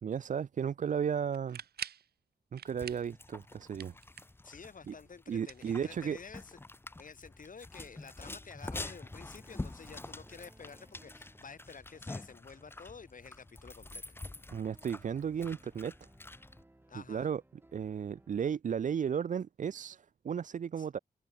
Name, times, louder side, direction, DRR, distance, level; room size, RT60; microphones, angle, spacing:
voice 1, 0.0-1.6 2.5-3.9 4.9-5.0 5.3-6.2 14.5-15.9 17.1-17.4 17.7-21.0, right 7 dB, 50° right, 0.5 m, -34 dB
sound 1, 1.3-2.1 2.5-3.1 3.4-4.5 5.3-6.3, right 9 dB, 90° right, 0.9 m, -45 dB
sound 2, 2.7-16.6, left 2 dB, 15° left, 0.7 m, -47 dB
voice 2, 4.4-6.6 7.0-14.0 16.9-17.3 20.8-20.9, left 5 dB, 55° left, 7.2 m, -51 dB
sound 3, 8.7-18.6, right 1 dB, 15° right, 6.0 m, -64 dB
wide cardioid pair, 100°, 16 cm